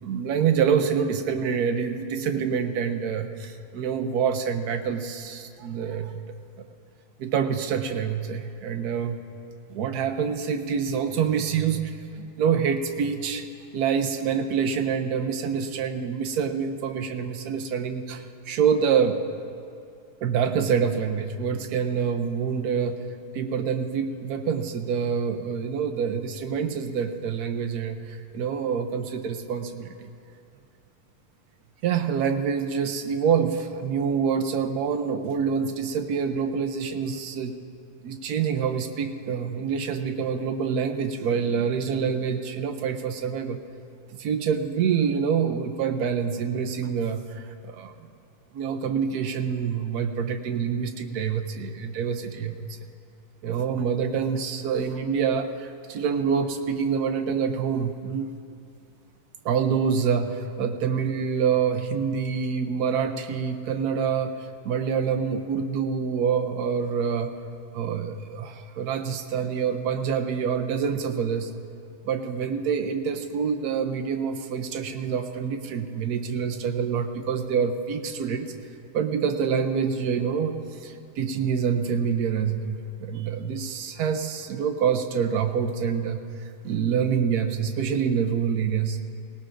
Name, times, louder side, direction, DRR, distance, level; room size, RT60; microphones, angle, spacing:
voice 1, 0.0-6.2 7.2-9.2 9.7-13.4 13.7-19.2 20.2-23.0 23.3-30.1 31.8-37.6 38.0-43.6 44.2-47.9 48.5-52.7 53.4-58.3 59.4-64.3 64.6-67.3 67.7-71.5 72.0-78.5 78.9-89.0, right 7 dB, 75° right, 6 dB, 0.8 m, -26 dB
18.5 x 18.0 x 2.6 m, 2.4 s
omnidirectional pair, 2.4 m